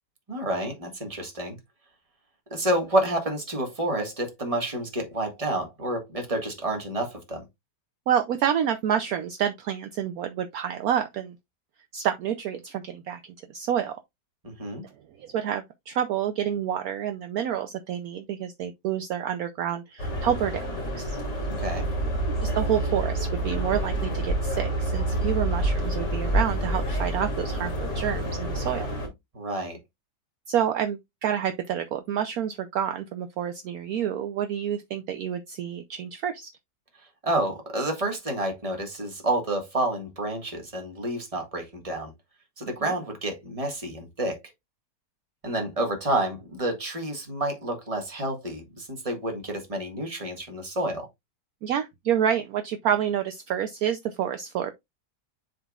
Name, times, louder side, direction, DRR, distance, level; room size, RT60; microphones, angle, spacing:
voice 1, 0.3-1.6 2.5-7.4 14.4-14.8 21.6-21.9 29.3-29.8 37.2-42.1 42.6-44.4 45.4-51.1, right 1 dB, 20° right, 1.7 m, -29 dB
voice 2, 8.1-11.4 11.9-13.2 13.5-14.0 15.2-20.7 20.9-21.2 22.3-28.9 30.5-36.5 42.6-42.9 51.6-54.7, right 9 dB, 70° right, 1.0 m, -28 dB
sound 1, 20.0-29.1, right 1 dB, 90° left, 3.2 m, -28 dB
11.0 x 3.7 x 2.4 m
omnidirectional pair, 1.8 m